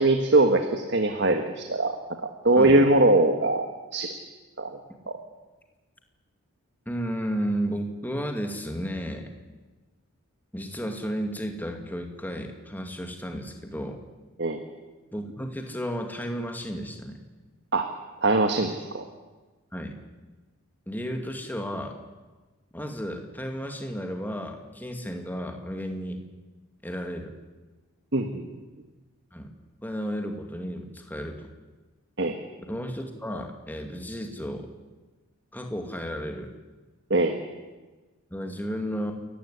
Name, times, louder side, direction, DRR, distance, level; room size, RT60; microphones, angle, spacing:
voice 1, 0.0-1.9 2.4-4.1 4.6-4.7 14.4-14.6 17.7-17.9 18.2-19.0 28.1-28.4 32.2-32.3 37.1-37.4, right 2 dB, 50° right, 5 dB, 1.6 m, -21 dB
voice 2, 6.9-9.3 10.5-14.0 15.1-17.2 19.7-20.0 20.9-22.0 22.7-26.2 26.8-27.4 29.3-29.5 29.8-31.5 32.7-34.7 35.5-36.5 38.3-39.1, equal, 10° left, 4 dB, 2.3 m, -33 dB
28.5 x 15.0 x 10.0 m, 1.2 s
head